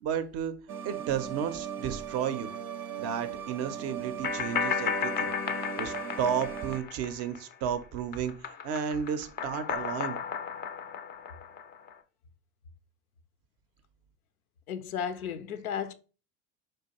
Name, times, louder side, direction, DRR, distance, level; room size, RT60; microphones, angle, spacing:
voice 1, 0.0-0.5 0.8-2.5 3.0-5.4 5.8-8.3 8.6-10.2, right 8 dB, 35° right, 0.4 m, -32 dB
sound 1, 0.7-6.8, right 8 dB, 85° right, 0.5 m, -38 dB
sound 2, 4.2-7.7 8.0-11.9, left 7 dB, 25° left, 0.4 m, -34 dB
voice 2, 14.7-15.9, left 8 dB, 80° left, 0.5 m, -34 dB
4.7 x 2.2 x 2.8 m
hypercardioid pair, 80°, 42 cm